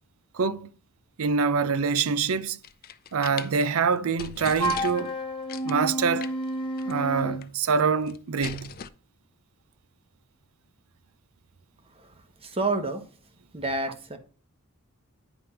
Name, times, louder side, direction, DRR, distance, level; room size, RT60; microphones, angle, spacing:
voice 1, 0.3-0.7 1.2-2.6 3.1-5.1 5.6-6.3 6.9-8.7, right 5 dB, 70° right, 0.5 m, -25 dB
sound 1, 2.4-3.5 3.9-4.0 4.2-5.1 5.5-5.8 6.2-6.5 6.8-6.9 7.2-7.8 8.1-8.9, left 7 dB, 45° left, 0.5 m, -39 dB
Wind instrument woodwind instrument, 4.6-7.4, right 1 dB, 25° left, 1.1 m, -30 dB
voice 2, 12.4-13.0 13.5-14.2, right 2 dB, 25° right, 1.1 m, -29 dB
9.9 x 3.4 x 5.7 m
head